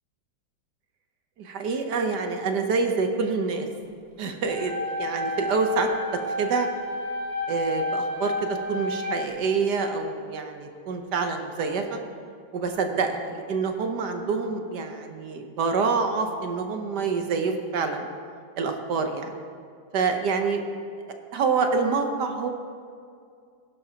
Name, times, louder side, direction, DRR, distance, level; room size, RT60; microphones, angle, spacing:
voice 1, 1.4-3.7 4.2-4.7 5.0-6.7 7.5-12.0 12.5-18.1 18.6-19.3 19.9-20.6 21.3-22.5, right 4 dB, 65° right, 5 dB, 1.4 m, -26 dB
sound 1, 4.5-9.5, left 1 dB, 40° right, 2.5 m, -31 dB
17.0 x 11.0 x 2.8 m, 2.3 s
omnidirectional pair, 2.0 m